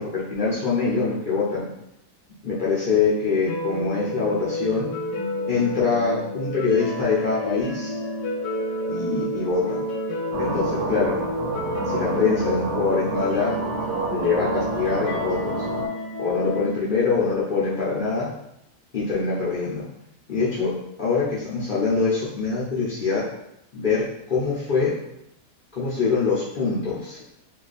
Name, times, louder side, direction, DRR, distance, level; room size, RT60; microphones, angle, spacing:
voice 1, 0.0-1.7 2.4-4.9 5.5-7.9 8.9-9.8 10.4-11.2 11.9-13.5 14.1-15.5 16.2-18.3 18.9-19.8 20.3-20.7 21.0-23.2 23.7-24.9 25.7-27.2, left 4 dB, 55° left, -7 dB, 0.5 m, -24 dB
sound 1, 3.5-16.7, left 1 dB, 80° left, 1.2 m, -30 dB
sound 2, 10.3-15.9, right 4 dB, 80° right, 1.1 m, -29 dB
2.8 x 2.3 x 3.9 m, 0.80 s
omnidirectional pair, 1.8 m